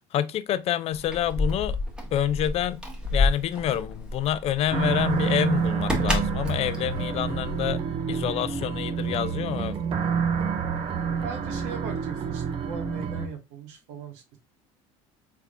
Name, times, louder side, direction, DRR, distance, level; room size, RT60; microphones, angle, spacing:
voice 1, 0.1-1.8 2.1-2.8 3.1-7.8 8.1-9.8, left 11 dB, 45° left, 0.4 m, -27 dB
Keys jangling, 0.9-7.9, left 2 dB, 5° right, 1.0 m, -29 dB
sound 1, 4.7-13.3, right 6 dB, 40° right, 0.7 m, -28 dB
voice 2, 11.2-14.4, right 5 dB, 85° right, 1.0 m, -39 dB
3.5 x 3.4 x 2.3 m
supercardioid pair, 105°, 15 cm